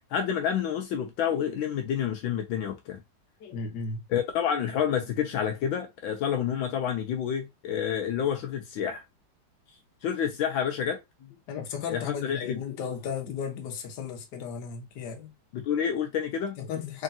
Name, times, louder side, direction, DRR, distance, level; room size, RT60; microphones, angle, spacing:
voice 1, 0.1-3.0 4.1-9.0 10.0-11.0 11.9-12.6 15.5-16.5, left 8 dB, 80° left, 1.5 m, -29 dB
voice 2, 3.4-4.0 11.5-15.3 16.6-17.0, left 6 dB, 60° left, 1.5 m, -35 dB
3.8 x 3.7 x 2.6 m
omnidirectional pair, 2.2 m